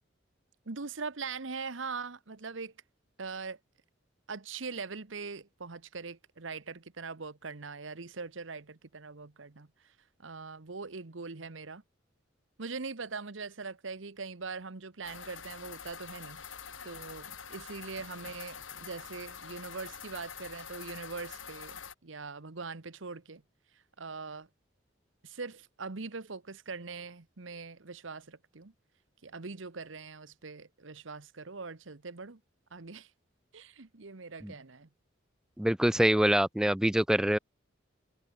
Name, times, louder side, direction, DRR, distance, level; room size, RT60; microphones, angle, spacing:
voice 1, 0.7-2.7 3.2-3.6 4.3-9.7 10.2-11.8 12.6-16.4 16.8-23.4 24.0-24.5 25.2-28.7 29.2-32.4 32.7-33.1 33.5-34.9, right 4 dB, 80° right, 1.2 m, -42 dB
sound 1, 15.0-21.9, left 6 dB, 85° left, 4.1 m, -46 dB
voice 2, 35.6-37.4, right 1 dB, 5° right, 0.3 m, -25 dB
head